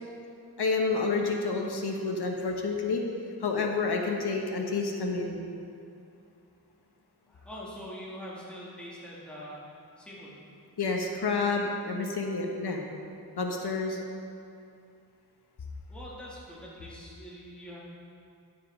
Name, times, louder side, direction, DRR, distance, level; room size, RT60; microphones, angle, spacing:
voice 1, 0.6-3.0 3.4-5.4 10.8-12.8 13.4-14.0, left 4 dB, 75° left, 1 dB, 1.1 m, -29 dB
voice 2, 7.3-9.6 10.0-10.4 15.9-17.8, equal, 5° left, -7 dB, 2.1 m, -43 dB
9.8 x 9.4 x 3.6 m, 2.6 s
wide cardioid pair, 75°, 39 cm